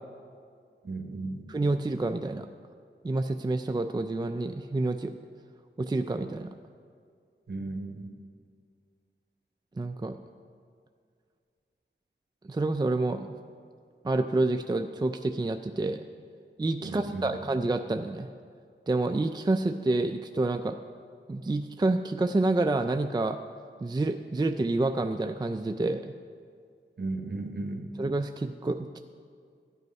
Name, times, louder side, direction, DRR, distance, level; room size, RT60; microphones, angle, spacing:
voice 1, 0.8-1.4 7.5-8.1 16.8-17.4 27.0-27.9, right 2 dB, 55° right, 4 dB, 1.3 m, -35 dB
voice 2, 1.5-2.5 3.0-5.1 5.8-6.5 9.8-10.2 12.5-13.4 14.0-16.0 16.6-18.3 18.9-20.8 21.3-23.4 23.8-26.1 28.0-29.0, right 2 dB, 20° right, 7 dB, 0.4 m, -28 dB
13.0 x 8.2 x 5.3 m, 2.2 s
wide cardioid pair, 65°, 20 cm